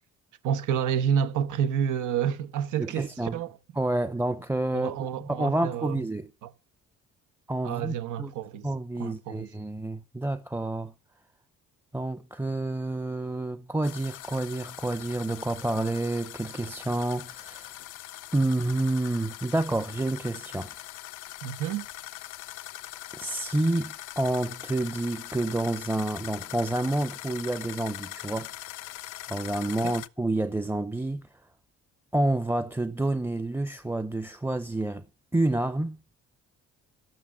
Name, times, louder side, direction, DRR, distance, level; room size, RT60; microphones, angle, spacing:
voice 1, 0.4-3.5 4.7-5.9 7.6-8.7 9.0-9.5 21.4-21.9 29.8-29.9, right 8 dB, 90° right, 1.1 m, -29 dB
voice 2, 2.8-3.4 3.7-6.3 7.5-8.3 8.6-10.9 11.9-17.8 18.3-20.8 23.1-28.5 28.8-29.0 29.3-31.5 32.1-35.1 35.3-36.0, right 2 dB, 5° right, 0.6 m, -29 dB
sound 1, 13.8-30.1, left 15 dB, 80° left, 0.7 m, -42 dB
11.5 x 8.8 x 7.3 m
cardioid pair, 90°, 30 cm